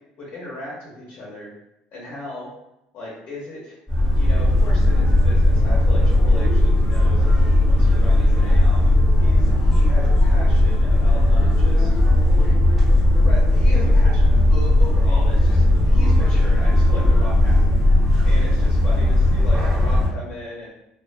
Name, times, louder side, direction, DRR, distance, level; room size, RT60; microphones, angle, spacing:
voice 1, 0.2-1.5 1.9-2.5 2.9-3.8 4.1-8.7 9.2-11.9 13.1-17.8 18.2-20.7, left 1 dB, 60° left, -6 dB, 0.8 m, -37 dB
sound 1, 3.9-20.1, left 1 dB, 5° right, 1.0 m, -16 dB
2.4 x 2.2 x 2.5 m, 0.85 s
cardioid pair, 115°, 3 cm